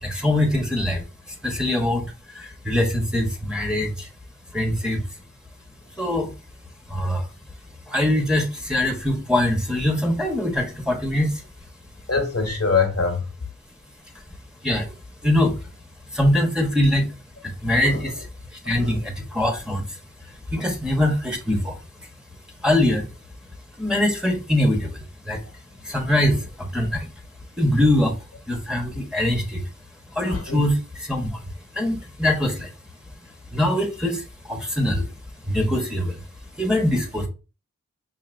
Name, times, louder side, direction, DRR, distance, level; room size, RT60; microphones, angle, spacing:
voice 1, 0.0-1.0 1.4-2.0 2.3-4.1 4.5-5.0 6.0-6.3 6.9-7.2 7.9-11.3 14.6-14.9 15.2-15.5 16.1-17.1 17.4-18.3 18.6-19.8 20.5-21.8 22.6-23.0 23.8-25.4 25.9-27.1 27.6-28.1 28.5-29.6 30.1-31.3 31.7-32.7 33.5-34.2 34.5-35.0 35.5-36.2 36.6-37.3, left 1 dB, 5° right, 1.1 m, -22 dB
voice 2, 12.1-13.2 17.8-18.1 18.8-19.0 30.3-30.6, left 4 dB, 55° left, 1.0 m, -24 dB
5.6 x 2.7 x 2.5 m
wide cardioid pair, 40°, 29 cm